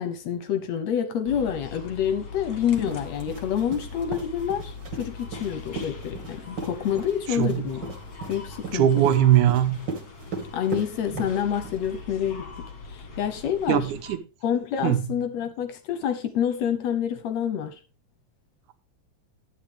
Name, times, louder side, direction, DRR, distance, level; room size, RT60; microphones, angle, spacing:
voice 1, 0.0-7.9 8.3-9.0 10.5-12.4 12.9-13.9 14.4-17.8, left 9 dB, 70° left, 1.7 m, -27 dB
sound 1, 1.3-14.2, left 4 dB, 40° left, 1.5 m, -41 dB
sound 2, 2.7-11.9, right 4 dB, 40° right, 2.0 m, -37 dB
voice 2, 7.4-7.7 8.7-9.8 13.7-14.2 14.8-15.0, right 11 dB, 75° right, 2.3 m, -20 dB
11.0 x 9.0 x 3.4 m
omnidirectional pair, 3.9 m